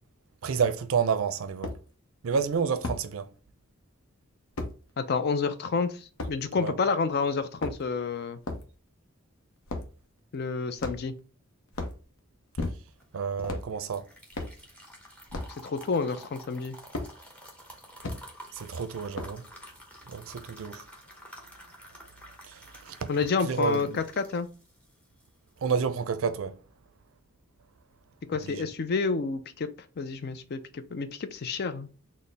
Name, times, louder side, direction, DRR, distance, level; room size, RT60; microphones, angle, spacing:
voice 1, 0.4-1.7 2.2-3.3 6.6-6.7 13.1-14.1 18.5-19.5 20.1-20.8 22.4-23.1 23.4-24.0 25.6-26.6 28.4-28.7, right 6 dB, 75° right, 0.4 m, -30 dB
sound 1, 0.6-0.7 1.6-1.8 2.8-3.0 4.6-4.7 6.2-6.4 7.4-8.0 8.4-8.7 9.7-9.9 10.8-11.2 11.7-12.0 12.5-13.0 13.4-13.7 14.3-14.6 15.3-15.6 16.9-17.1 18.0-18.2 19.1-19.5, left 2 dB, 75° left, 0.7 m, -34 dB
voice 2, 5.0-8.4 10.3-11.1 15.6-16.8 23.1-24.5 28.3-29.7 30.0-31.9, left 4 dB, 50° left, 0.4 m, -29 dB
sound 2, 13.0-26.0, equal, 5° left, 0.7 m, -49 dB
4.1 x 2.1 x 3.3 m
head